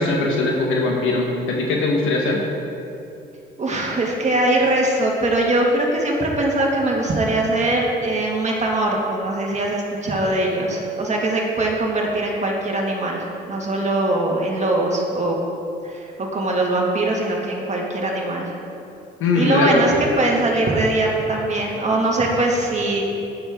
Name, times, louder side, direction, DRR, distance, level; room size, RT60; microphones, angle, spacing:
voice 1, 0.0-2.4 19.2-20.0, left 3 dB, 85° left, -1 dB, 1.3 m, -20 dB
voice 2, 3.6-15.4 15.8-18.5 19.3-23.2, right 2 dB, 35° right, -2 dB, 2.0 m, -21 dB
12.0 x 9.8 x 3.7 m, 2.7 s
cardioid pair, 90°, 20 cm